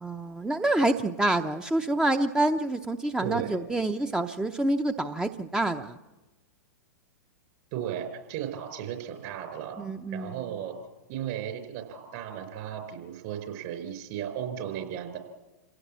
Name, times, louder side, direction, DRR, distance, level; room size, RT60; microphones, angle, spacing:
voice 1, 0.0-6.0 9.8-10.4, right 2 dB, 5° right, 8 dB, 0.7 m, -27 dB
voice 2, 3.2-3.6 7.7-9.8 10.1-10.8 11.1-15.2, right 10 dB, 50° right, 7 dB, 4.7 m, -35 dB
28.0 x 17.0 x 7.4 m, 1.1 s
figure-of-eight pair, 105°, 10 cm